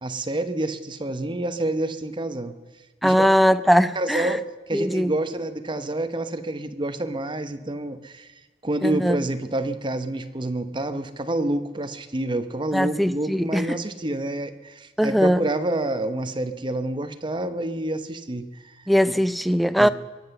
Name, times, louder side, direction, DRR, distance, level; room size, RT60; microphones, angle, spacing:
voice 1, 0.0-2.5 3.0-3.3 3.9-8.3 8.6-18.7 19.1-19.2 19.8-19.9, right 1 dB, 25° right, 0.9 m, -28 dB
voice 2, 3.0-4.3 4.7-5.1 8.8-9.2 12.7-13.8 15.0-15.4 18.9-19.9, equal, ahead, 0.3 m, -20 dB
22.5 x 7.9 x 6.8 m
head